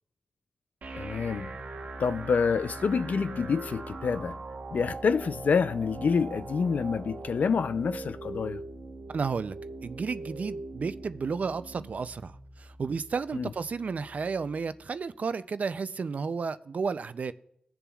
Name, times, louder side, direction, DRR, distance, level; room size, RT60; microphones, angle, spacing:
sound 1, 0.8-14.8, right 3 dB, 90° right, 1.0 m, -41 dB
voice 1, 0.9-1.5 2.0-4.4 4.7-8.6 13.3-13.5, left 5 dB, 80° left, 0.3 m, -27 dB
voice 2, 9.1-9.6 9.8-12.3 12.6-17.3, right 5 dB, 65° right, 0.4 m, -32 dB
21.0 x 7.0 x 2.3 m
wide cardioid pair, 115°, 3 cm